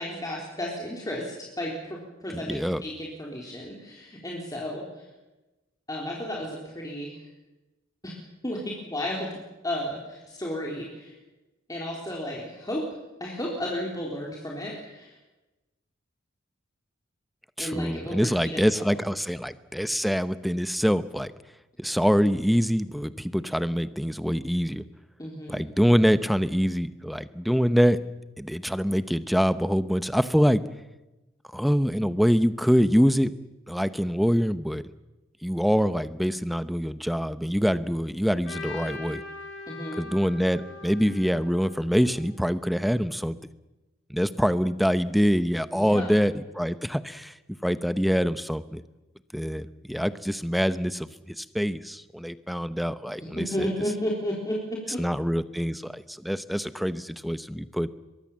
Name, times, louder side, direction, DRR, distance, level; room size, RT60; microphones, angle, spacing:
voice 1, 0.0-4.8 5.9-7.1 8.0-8.1 8.4-11.1 11.7-12.8 13.2-15.1 17.6-18.6 18.9-19.0 25.2-25.6 39.7-40.0 45.7-46.1 53.4-55.0, equal, 20° left, -3 dB, 4.0 m, -33 dB
voice 2, 2.3-2.8 17.6-21.3 21.8-24.8 25.5-28.0 28.4-30.6 31.5-33.3 33.7-34.8 35.4-39.2 40.0-43.4 44.1-47.3 47.6-48.8 49.3-53.7 55.0-57.9, equal, ahead, 13 dB, 0.8 m, -25 dB
Trumpet, 38.4-42.6, left 3 dB, 80° left, 3.7 m, -41 dB
23.5 x 22.5 x 7.4 m, 1.1 s
head